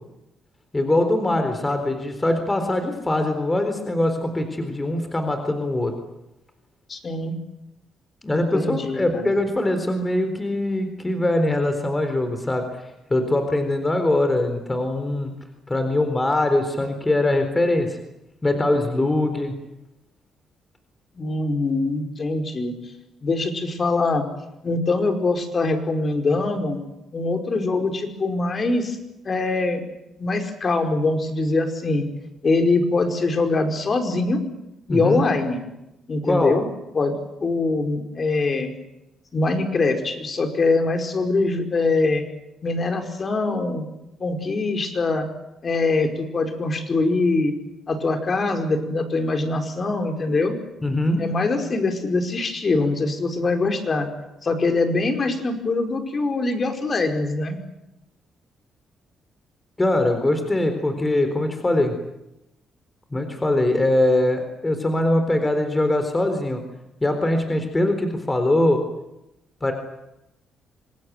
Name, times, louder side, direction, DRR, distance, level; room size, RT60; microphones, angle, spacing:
voice 1, 0.7-5.9 8.2-12.8 13.1-15.3 15.7-18.0 18.4-19.5 34.9-35.2 36.2-36.5 50.8-51.2 59.8-62.0 63.1-66.6 67.0-68.8 69.6-69.7, left 1 dB, 20° left, 7 dB, 4.0 m, -22 dB
voice 2, 6.9-7.4 8.3-9.3 21.1-22.7 23.2-24.2 24.6-26.8 27.1-29.0 29.2-29.8 30.2-32.0 32.4-34.4 34.9-35.6 36.1-36.7 36.9-37.1 37.4-38.7 39.3-42.2 42.6-43.9 44.2-45.3 45.6-47.5 47.9-50.6 51.2-54.1 54.4-57.6, left 3 dB, 40° left, 5 dB, 4.9 m, -23 dB
26.0 x 20.0 x 9.4 m, 0.92 s
cardioid pair, 90°, 0 cm